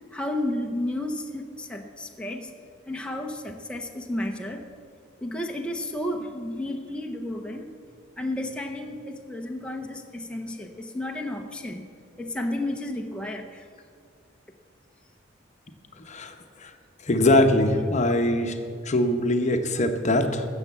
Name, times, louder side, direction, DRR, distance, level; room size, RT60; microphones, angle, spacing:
voice 1, 0.1-2.5 2.9-4.7 5.2-7.7 8.2-11.9 12.2-13.7 17.7-17.9, left 1 dB, 5° left, 1 dB, 0.7 m, -32 dB
voice 2, 17.1-18.6 18.9-20.5, left 1 dB, 40° left, 6 dB, 0.9 m, -22 dB
13.0 x 7.2 x 8.2 m, 2.2 s
head